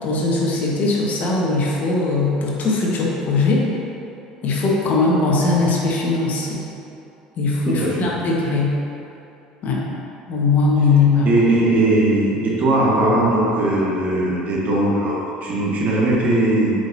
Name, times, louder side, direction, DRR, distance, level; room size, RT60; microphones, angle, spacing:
voice 1, 0.0-3.7 4.4-6.7 7.4-8.7 9.6-9.8 10.3-11.3, left 3 dB, 45° left, -3 dB, 1.3 m, -19 dB
voice 2, 7.6-8.1 11.2-16.7, right 1 dB, 40° right, -4 dB, 1.5 m, -19 dB
8.0 x 5.0 x 2.7 m, 2.8 s
figure-of-eight pair, 65°, 4 cm